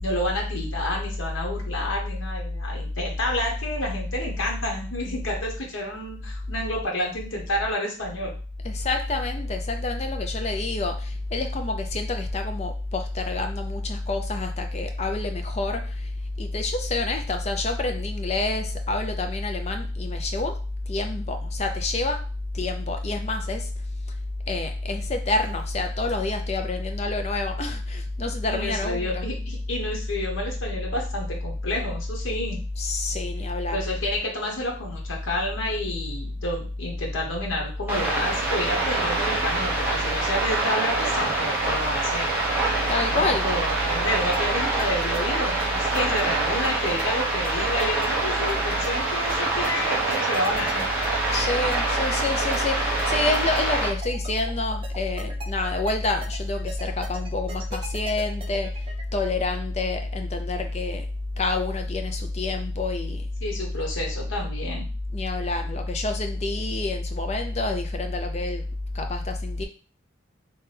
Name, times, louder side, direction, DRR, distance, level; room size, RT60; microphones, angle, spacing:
voice 1, 0.0-8.3 28.5-32.6 33.7-42.3 43.1-50.9 63.4-64.9, left 1 dB, 80° left, -1 dB, 1.0 m, -30 dB
voice 2, 8.6-16.1 16.4-20.6 20.9-22.2 22.5-23.7 24.5-29.3 32.8-33.9 42.9-43.5 51.3-61.1 61.4-63.2 65.1-68.6 68.9-69.6, left 2 dB, 35° left, 5 dB, 0.5 m, -27 dB
sound 1, 37.9-53.9, right 2 dB, 10° right, 1.0 m, -25 dB
sound 2, 44.3-59.0, right 2 dB, 25° right, 0.4 m, -39 dB
3.3 x 2.9 x 3.3 m, 0.38 s
head